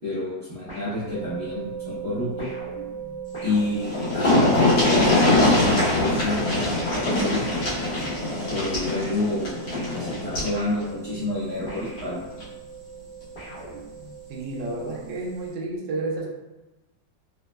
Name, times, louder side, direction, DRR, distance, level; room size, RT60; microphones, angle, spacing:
voice 1, 0.0-2.5 3.4-7.4 8.5-9.6 9.9-12.2, left 2 dB, 55° right, -10 dB, 0.7 m, -29 dB
sound 1, 0.7-1.7 2.4-5.5 6.5-8.6 8.9-12.6 13.3-14.3, right 1 dB, 25° left, 0.6 m, -41 dB
sound 2, 1.1-15.4, right 7 dB, 50° left, 1.1 m, -39 dB
sound 3, 3.5-3.6 3.8-10.6 11.9-12.0 12.4-12.5, left 2 dB, 85° left, 1.8 m, -22 dB
voice 2, 14.3-16.3, right 2 dB, 80° right, -2 dB, 1.2 m, -31 dB
4.0 x 2.0 x 2.2 m, 1.0 s
omnidirectional pair, 2.0 m